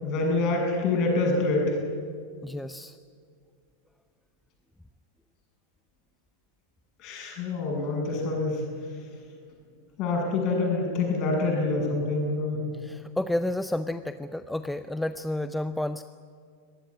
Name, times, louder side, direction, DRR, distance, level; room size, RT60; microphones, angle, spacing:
voice 1, 0.0-1.8 7.0-8.6 10.0-12.7, left 3 dB, 40° left, 0 dB, 7.5 m, -26 dB
voice 2, 2.4-2.9 12.8-16.0, left 1 dB, 5° left, 12 dB, 0.6 m, -30 dB
24.0 x 19.0 x 8.6 m, 2.2 s
figure-of-eight pair, 90°, 0 cm